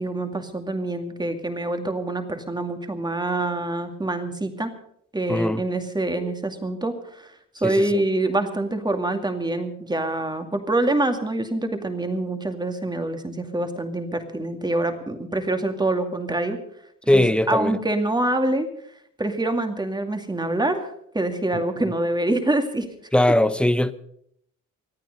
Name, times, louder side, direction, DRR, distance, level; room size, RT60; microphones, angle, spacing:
voice 1, 0.0-4.7 5.1-7.3 7.6-16.6 17.1-18.7 19.2-20.9 21.1-22.9, right 2 dB, 15° right, 2.3 m, -25 dB
voice 2, 5.3-5.6 7.6-8.0 17.1-17.8 21.5-21.6 23.1-23.9, left 1 dB, 5° left, 0.8 m, -20 dB
25.5 x 9.3 x 5.4 m
cardioid pair, 90°, 30 cm